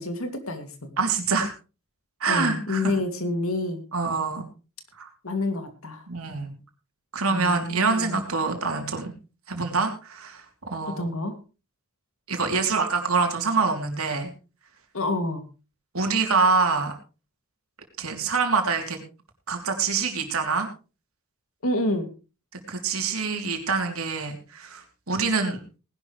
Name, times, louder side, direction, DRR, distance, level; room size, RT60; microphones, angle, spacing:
voice 1, 0.0-0.9 2.3-3.8 5.2-6.0 7.3-8.2 11.0-11.4 14.9-15.4 21.6-22.1, left 2 dB, 70° left, 7 dB, 2.5 m, -28 dB
voice 2, 1.0-1.5 2.2-3.0 3.9-4.4 5.0-5.1 6.1-6.5 7.1-9.1 9.5-11.1 12.3-14.3 15.9-16.9 18.0-19.0 19.5-20.7 22.7-25.6, right 4 dB, 75° right, 4 dB, 3.2 m, -25 dB
19.5 x 11.5 x 3.2 m, 0.32 s
head